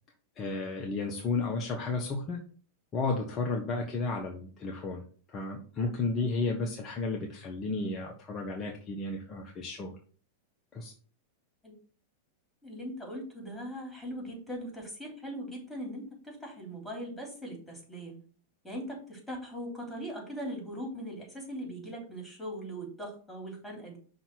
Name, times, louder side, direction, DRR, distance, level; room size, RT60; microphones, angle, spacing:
voice 1, 0.4-2.4 2.9-5.0 5.3-9.9 10.7-10.9, left 3 dB, 30° left, 1 dB, 1.1 m, -33 dB
voice 2, 12.6-18.2 18.6-24.0, equal, 5° left, 0 dB, 3.3 m, -40 dB
5.7 x 4.0 x 6.1 m, 0.42 s
figure-of-eight pair, 95°, 0 cm